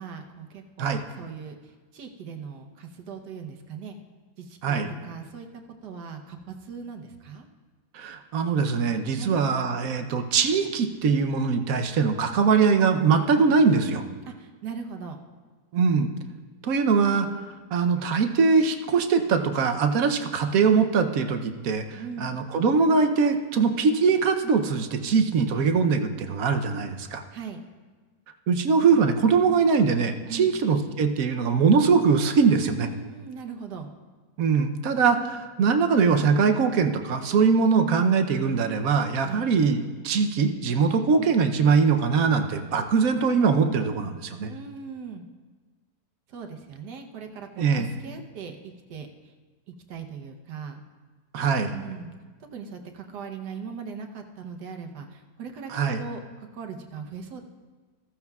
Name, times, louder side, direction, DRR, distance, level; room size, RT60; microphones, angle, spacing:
voice 1, 0.0-1.6 1.9-4.0 4.4-5.5 5.8-7.5 9.1-9.4 14.3-15.2 22.0-22.3 27.3-27.6 30.3-30.5 32.8-33.9 39.2-39.5 44.5-45.2 46.3-49.1 49.9-50.8 51.7-52.1 52.5-55.7 56.0-57.4, right 6 dB, 80° right, 4 dB, 1.5 m, -39 dB
voice 2, 7.9-14.0 15.7-16.1 16.6-17.3 17.7-27.2 28.5-32.9 34.4-44.5 47.6-47.9 51.3-51.7 55.7-56.0, right 5 dB, 65° right, 7 dB, 1.1 m, -22 dB
14.5 x 14.5 x 2.4 m, 1.4 s
omnidirectional pair, 1.8 m